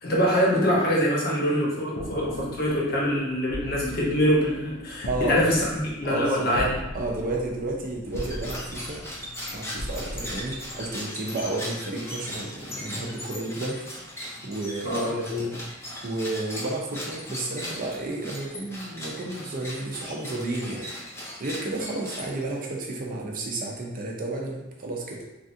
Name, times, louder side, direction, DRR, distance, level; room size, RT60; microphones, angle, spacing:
voice 1, 0.0-6.7 14.8-15.6, equal, 50° left, -4 dB, 0.8 m, -24 dB
sound 1, 1.9-11.4, left 1 dB, 75° left, 0.5 m, -39 dB
voice 2, 5.1-5.4 6.0-6.7 6.9-9.0 9.5-13.9 14.4-15.0 15.4-15.6 16.0-20.9 21.4-25.2, right 2 dB, 45° right, 0 dB, 0.5 m, -32 dB
sound 2, 8.1-22.7, left 1 dB, 15° left, 0.5 m, -38 dB
3.3 x 2.4 x 2.6 m, 1.0 s
head